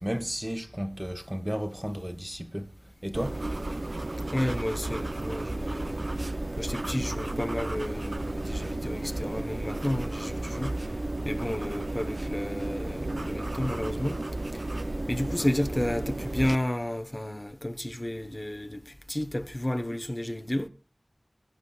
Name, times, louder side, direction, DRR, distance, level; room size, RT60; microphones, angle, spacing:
voice 1, 0.0-2.7 3.0-3.5, equal, 15° right, 1.2 m, -33 dB
sound 1, 3.1-16.6, right 2 dB, 60° right, 0.6 m, -33 dB
voice 2, 4.3-6.0 6.6-10.7 11.2-14.2 14.5-14.6 15.1-20.7, left 1 dB, 30° left, 1.0 m, -31 dB
21.0 x 9.8 x 2.4 m
wide cardioid pair, 45°, 0 cm